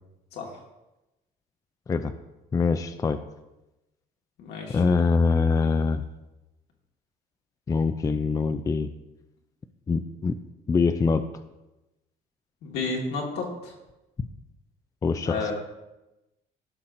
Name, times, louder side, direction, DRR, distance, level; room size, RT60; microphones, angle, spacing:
voice 1, 2.5-3.2 4.7-6.0 7.7-8.9 9.9-10.4 10.7-11.3 15.0-15.5, left 4 dB, 20° left, 9 dB, 0.4 m, -24 dB
voice 2, 4.4-4.8 12.6-13.7 15.3-15.5, left 3 dB, 80° left, 0 dB, 1.8 m, -31 dB
14.0 x 5.6 x 2.6 m, 0.98 s
cardioid pair, 110°, 17 cm